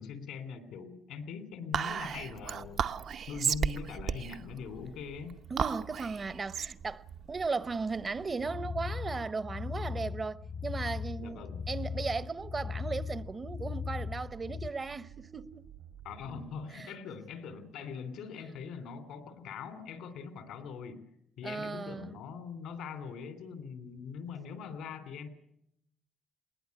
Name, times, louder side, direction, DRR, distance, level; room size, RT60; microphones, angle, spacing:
voice 1, 0.0-2.9 3.3-5.4 11.2-11.6 16.0-21.1 21.4-25.3, left 6 dB, 85° left, 3.2 m, -42 dB
Whispering, 1.7-8.4, right 7 dB, 60° right, 0.8 m, -35 dB
sound 1, 5.1-16.7, right 10 dB, 90° right, 5.2 m, -54 dB
voice 2, 5.5-15.7 16.7-16.9 21.4-22.2, right 4 dB, 35° right, 0.8 m, -36 dB
sound 2, 8.3-14.7, left 6 dB, 60° left, 1.0 m, -38 dB
20.5 x 19.0 x 9.6 m
cardioid pair, 90°, 0 cm